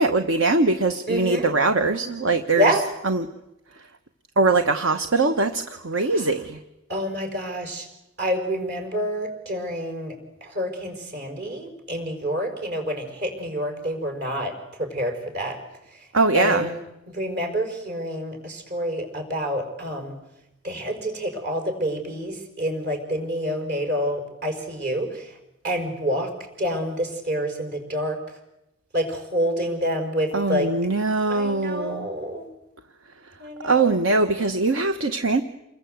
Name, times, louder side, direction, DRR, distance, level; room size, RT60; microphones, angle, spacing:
voice 1, 0.0-3.3 4.4-6.6 16.1-16.7 30.3-32.1 33.6-35.4, right 3 dB, 75° right, 8 dB, 1.1 m, -22 dB
voice 2, 1.1-1.5 2.6-2.8 6.0-6.2 6.9-7.9 8.2-10.2 10.4-15.6 16.3-16.7 17.1-20.1 20.6-25.3 25.6-26.3 26.6-28.2 28.9-30.7 31.3-32.5 33.4-34.0, equal, 55° right, 5 dB, 5.6 m, -28 dB
28.5 x 22.0 x 8.0 m, 0.90 s
head